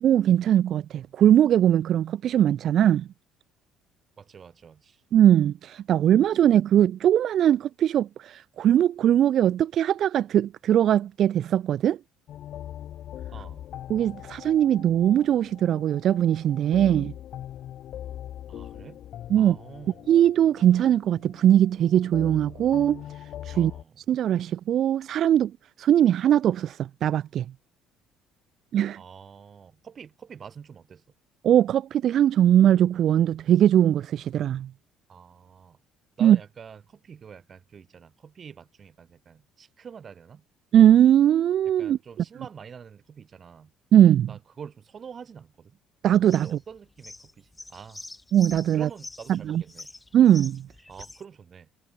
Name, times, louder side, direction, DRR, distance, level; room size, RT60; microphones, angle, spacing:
voice 1, 0.0-3.1 5.1-12.0 13.9-17.1 19.3-19.6 20.1-23.0 23.4-23.7 24.0-25.5 25.8-27.4 28.7-29.0 31.4-34.7 36.2-36.4 40.7-42.0 43.9-44.3 46.0-46.5 48.3-48.9 49.3-49.6 50.1-50.6, right 10 dB, 45° right, 1.1 m, -20 dB
voice 2, 4.2-5.0 6.2-6.3 13.3-13.7 18.5-19.0 19.4-20.2 23.5-24.0 29.0-31.0 35.1-35.8 36.2-40.4 41.6-43.7 44.3-45.8 46.3-48.0 48.7-49.9 50.9-51.7, right 7 dB, 30° right, 5.6 m, -46 dB
sound 1, 12.3-23.8, left 11 dB, 45° left, 1.9 m, -41 dB
sound 2, 46.3-51.2, left 2 dB, 10° left, 4.2 m, -45 dB
cardioid pair, 165°, 0 cm